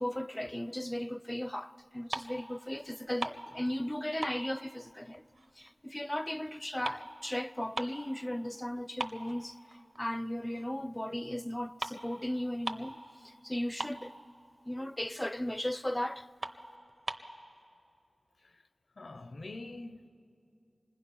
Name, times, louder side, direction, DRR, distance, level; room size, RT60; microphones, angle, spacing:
voice 1, 0.0-5.3 5.6-13.0 13.2-14.1 14.7-16.3, left 1 dB, 15° left, 0.4 m, -36 dB
sound 1, 1.8-2.5 2.8-3.9 4.2-5.7 6.0-8.1 8.5-8.6 9.0-10.1 10.5-10.7 11.5-11.6 11.8-12.0 12.3-12.4 12.6-13.0 13.3-13.4 13.6-14.4 14.9-15.0 15.4-15.5 15.9-16.0 16.4-17.3, right 2 dB, 60° right, 0.8 m, -40 dB
voice 2, 19.0-20.1, left 2 dB, 70° left, 0.7 m, -45 dB
26.5 x 20.0 x 5.6 m
wide cardioid pair, 70°, 0 cm